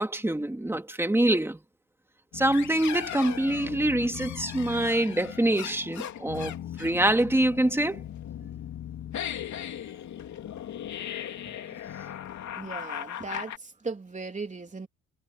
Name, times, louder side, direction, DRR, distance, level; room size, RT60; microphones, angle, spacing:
voice 1, 0.0-1.6 2.3-6.5 6.8-8.0, right 1 dB, 10° right, 2.5 m, -25 dB
sound 1, 2.3-13.6, left 10 dB, 65° left, 2.9 m, -38 dB
voice 2, 12.5-14.9, right 3 dB, 25° right, 3.5 m, -37 dB
cardioid pair, 90°, 30 cm